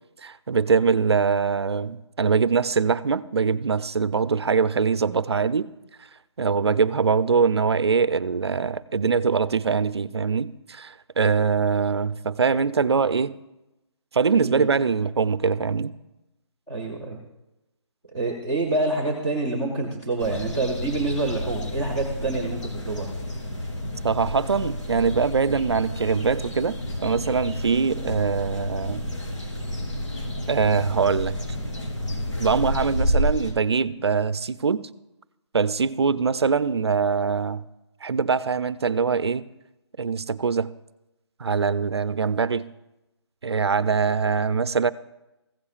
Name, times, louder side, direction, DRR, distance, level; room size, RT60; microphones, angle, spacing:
voice 1, 0.2-5.7 6.4-13.3 14.1-15.9 24.0-29.0 30.5-31.4 32.4-34.8 35.5-37.6 38.0-39.5 40.0-40.7 41.4-42.7 43.4-44.9, right 5 dB, 60° right, 0.5 m, -23 dB
voice 2, 16.7-17.2 18.1-23.1, right 2 dB, 5° left, 0.6 m, -27 dB
sound 1, 20.2-33.5, equal, 90° left, 3.7 m, -30 dB
15.5 x 8.4 x 2.4 m
hypercardioid pair, 180°, 15 cm